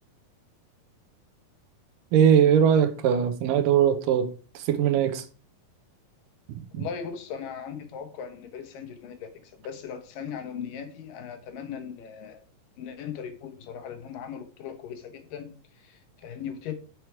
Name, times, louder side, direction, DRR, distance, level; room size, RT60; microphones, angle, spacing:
voice 1, 2.1-4.3 4.6-5.2 6.7-6.9, right 8 dB, 80° right, 2.3 m, -20 dB
voice 2, 6.8-9.3 9.6-12.4 12.8-16.7, left 7 dB, 80° left, 2.8 m, -38 dB
8.0 x 6.0 x 4.7 m
omnidirectional pair, 3.9 m